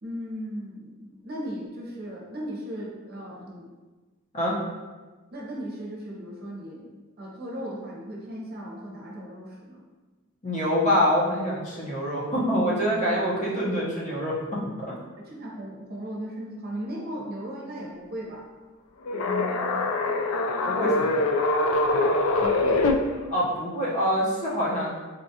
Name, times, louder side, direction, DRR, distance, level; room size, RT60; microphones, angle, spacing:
voice 1, 0.0-3.7 5.3-6.9 7.2-9.8 13.1-13.2 15.2-18.5 22.4-22.8, equal, 50° right, -3 dB, 0.7 m, -37 dB
voice 2, 10.4-14.4 14.8-14.9 19.2-19.8 20.7-21.2 23.3-24.9, equal, 35° left, -6 dB, 0.8 m, -26 dB
sound 1, 19.1-22.9, left 2 dB, 90° left, 0.4 m, -24 dB
4.1 x 2.4 x 2.7 m, 1.3 s
head